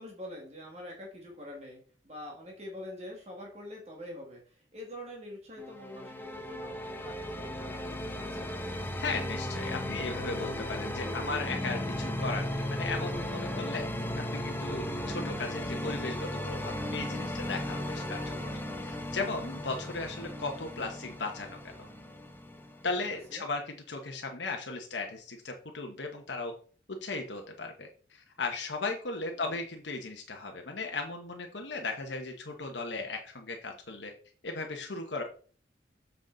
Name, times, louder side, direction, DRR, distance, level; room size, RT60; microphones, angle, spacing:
voice 1, 0.0-8.5 23.3-23.5 29.3-29.6, left 1 dB, 35° right, 0 dB, 1.9 m, -45 dB
sound 1, 5.6-23.3, left 1 dB, 10° left, 0.8 m, -36 dB
voice 2, 9.0-14.0 14.3-18.3 18.8-21.9 22.8-26.5 26.9-34.1 34.4-35.2, left 3 dB, 80° left, 3 dB, 1.0 m, -36 dB
7.7 x 5.8 x 3.9 m, 0.43 s
head